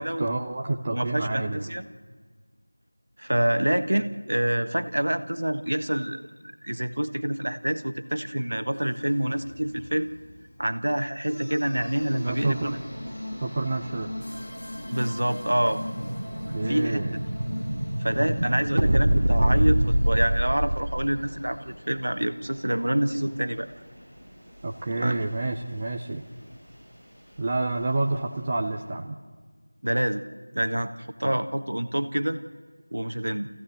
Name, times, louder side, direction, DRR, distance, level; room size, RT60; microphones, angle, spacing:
voice 1, 0.0-1.7 12.1-12.8 13.4-14.1 16.5-17.2 24.6-26.2 27.4-29.2 31.2-31.4, right 2 dB, 15° right, 1 dB, 0.5 m, -29 dB
voice 2, 0.9-1.8 3.2-10.1 10.6-12.8 14.9-15.8 16.6-17.0 18.0-23.7 24.9-25.2 29.8-30.2 30.5-32.4 32.9-33.5, right 1 dB, 65° right, 9 dB, 1.4 m, -27 dB
sound 1, 8.7-18.5, left 1 dB, 45° left, 2.4 m, -39 dB
sound 2, 11.7-28.9, equal, 5° left, 5.8 m, -48 dB
Explosion, 15.3-21.1, right 1 dB, 45° right, 1.5 m, -25 dB
27.0 x 15.5 x 7.8 m, 1.5 s
figure-of-eight pair, 180°, 0 cm